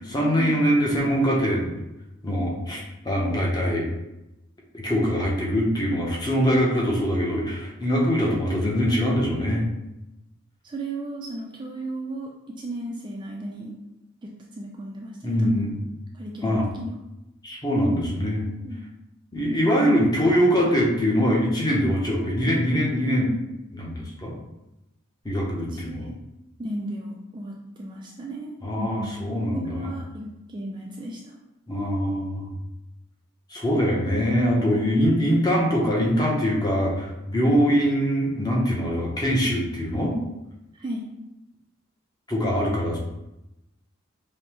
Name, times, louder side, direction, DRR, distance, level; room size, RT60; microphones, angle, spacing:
voice 1, 0.0-1.7 2.2-3.9 4.7-9.7 15.2-15.8 16.4-16.6 17.4-18.5 19.3-23.3 23.7-24.3 25.2-26.1 28.6-29.9 31.7-32.5 33.5-40.2 42.3-43.0, equal, 20° left, -3 dB, 0.7 m, -23 dB
voice 2, 10.6-13.7 14.2-15.7 16.1-17.0 18.6-18.9 25.7-26.1 26.6-31.3 40.7-41.1, right 1 dB, 25° right, -1 dB, 0.3 m, -35 dB
5.1 x 2.1 x 2.9 m, 0.93 s
head